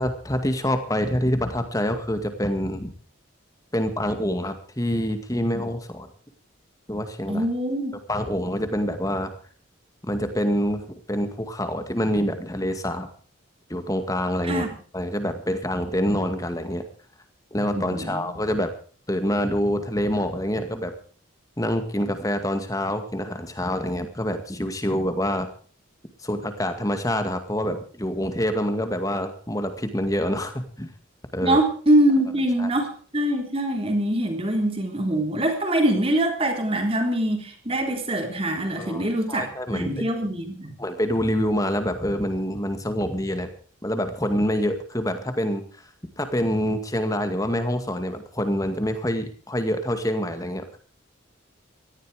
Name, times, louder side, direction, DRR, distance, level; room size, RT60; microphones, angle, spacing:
voice 1, 0.0-2.9 3.7-6.1 6.9-7.5 8.1-9.3 10.0-13.1 13.7-14.6 14.9-16.8 17.5-18.7 19.1-20.9 21.6-25.5 26.2-30.9 31.3-31.6 32.6-32.7 38.8-40.0 40.8-43.5 43.8-45.6 46.2-50.8, equal, 15° left, 8 dB, 2.0 m, -26 dB
voice 2, 7.3-8.0 14.4-14.7 17.7-18.3 31.4-40.7, right 1 dB, 30° right, 4 dB, 3.6 m, -24 dB
18.0 x 14.0 x 4.9 m, 0.42 s
head